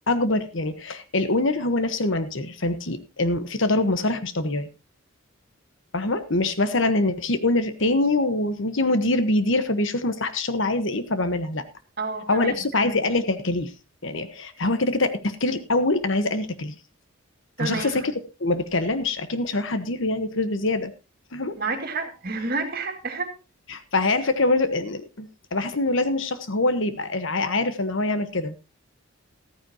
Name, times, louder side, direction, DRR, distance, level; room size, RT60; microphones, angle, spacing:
voice 1, 0.1-4.7 5.9-11.6 12.3-13.7 14.0-16.7 17.6-18.1 18.4-20.9 21.3-21.6 23.7-28.5, left 2 dB, 60° left, 1.2 m, -24 dB
voice 2, 12.0-12.5 17.6-18.1 21.6-23.3, right 3 dB, 45° right, 2.2 m, -29 dB
14.5 x 14.0 x 2.9 m
head